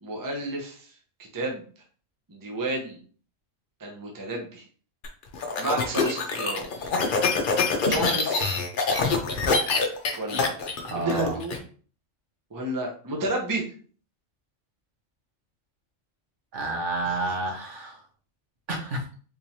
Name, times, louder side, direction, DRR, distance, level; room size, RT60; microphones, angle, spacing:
voice 1, 0.0-0.9 1.2-1.6 2.3-3.0 3.8-4.6 5.6-6.7 7.7-8.5 10.2-10.6 11.0-11.6 12.5-13.6 17.0-17.2, right 2 dB, 20° right, 0 dB, 0.6 m, -31 dB
sound 1, 5.0-11.6, left 4 dB, 50° left, 0.7 m, -25 dB
voice 2, 10.9-11.4 16.5-18.0 18.7-19.0, right 2 dB, 70° right, 0 dB, 1.3 m, -29 dB
3.7 x 3.0 x 2.7 m, 0.41 s
omnidirectional pair, 1.3 m